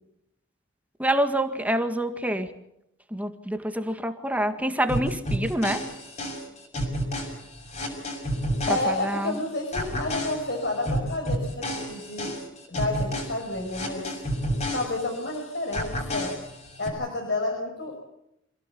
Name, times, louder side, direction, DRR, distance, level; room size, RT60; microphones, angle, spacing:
voice 1, 1.0-2.5 3.1-5.8 8.7-9.4, right 1 dB, 10° right, 7 dB, 2.0 m, -26 dB
sound 1, 4.9-9.4 9.7-15.4 15.7-16.9, equal, 35° left, 6.7 m, -31 dB
voice 2, 8.7-12.4 12.7-14.1 14.7-16.3 16.8-17.9, left 2 dB, 60° left, 2 dB, 6.0 m, -30 dB
27.5 x 17.0 x 8.5 m, 0.81 s
head